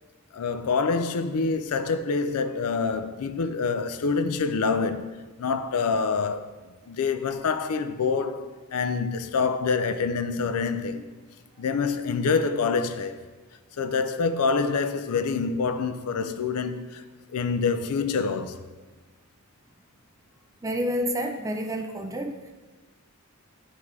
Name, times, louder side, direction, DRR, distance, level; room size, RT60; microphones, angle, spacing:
voice 1, 0.3-6.5 6.9-11.1 11.6-13.2 13.8-17.0 17.3-18.7, left 5 dB, 85° left, 0.4 m, -26 dB
voice 2, 20.6-22.4, equal, 15° right, 0.3 m, -29 dB
11.0 x 3.7 x 3.2 m
head